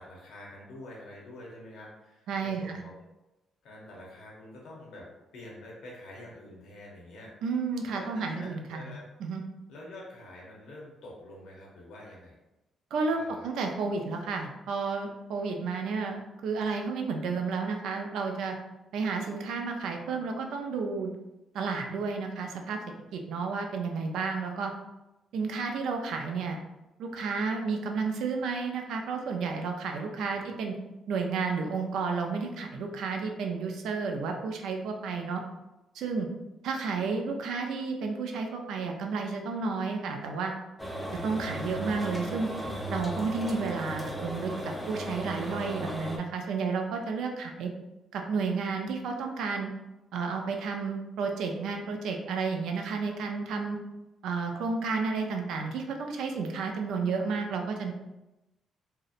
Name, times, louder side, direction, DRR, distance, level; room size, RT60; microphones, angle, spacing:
voice 1, 0.0-3.1 3.6-7.3 7.9-9.1 9.7-12.4 13.1-13.5 30.4-30.5, left 1 dB, 80° left, -3 dB, 0.7 m, -47 dB
voice 2, 2.3-2.8 7.4-9.4 12.9-18.6 18.9-21.1 21.5-22.8 23.1-24.7 25.3-26.6 27.0-30.7 31.1-35.4 35.9-36.3 36.6-40.5 41.2-42.5 42.9-47.7 48.1-49.7 50.1-53.8 54.2-57.9, right 4 dB, 80° right, 3 dB, 0.3 m, -31 dB
sound 1, 40.8-46.2, equal, ahead, 0.4 m, -36 dB
2.7 x 2.0 x 2.4 m, 0.98 s
cardioid pair, 90°, 0 cm